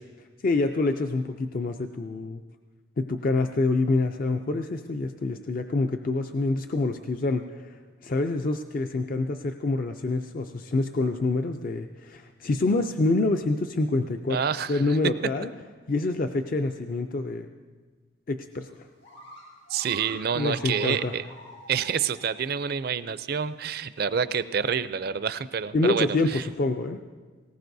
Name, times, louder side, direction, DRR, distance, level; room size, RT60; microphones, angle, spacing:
voice 1, 0.4-2.4 3.0-14.4 14.7-15.5 15.9-17.5 18.3-18.7 20.3-21.1 25.7-27.0, left 2 dB, 45° left, 6 dB, 0.4 m, -26 dB
voice 2, 14.3-15.0 19.7-21.3 21.7-26.4, right 7 dB, 50° right, 14 dB, 0.4 m, -28 dB
sound 1, 18.7-18.8 19.0-22.3 22.7-22.8 23.5-23.6, equal, 90° left, 5.2 m, -44 dB
19.5 x 18.0 x 2.7 m, 1.4 s
head